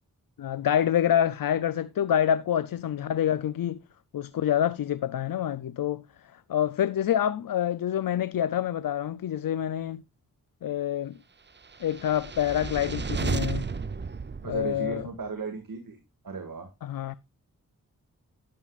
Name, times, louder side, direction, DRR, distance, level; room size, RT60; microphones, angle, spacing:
voice 1, 0.4-3.8 4.1-6.0 6.3-10.0 10.6-11.2 11.8-13.7 14.4-15.1 16.8-17.2, left 10 dB, 90° left, 0.5 m, -27 dB
sound 1, 11.7-15.2, right 5 dB, 35° right, 0.7 m, -33 dB
voice 2, 14.4-16.0 16.2-16.7, right 4 dB, 80° right, 2.1 m, -35 dB
12.5 x 11.5 x 2.4 m
wide cardioid pair, 65°, 33 cm